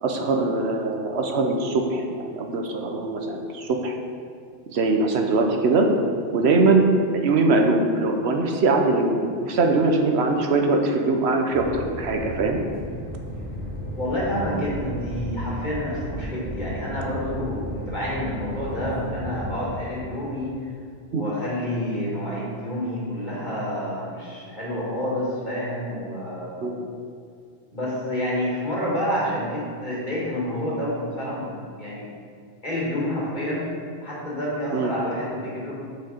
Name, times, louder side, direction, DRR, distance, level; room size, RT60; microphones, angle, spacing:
voice 1, 0.0-3.9 4.7-5.9 6.3-12.6 21.1-21.2 26.6-26.8 34.7-34.9, right 3 dB, 75° right, 3 dB, 1.0 m, -22 dB
sound 1, 11.5-19.8, equal, 10° right, 1.2 m, -34 dB
voice 2, 14.0-20.6 21.1-26.7 27.7-32.0 32.6-33.6 34.0-35.7, equal, 45° left, -6 dB, 2.2 m, -28 dB
7.1 x 6.4 x 4.3 m, 2.2 s
omnidirectional pair, 1.1 m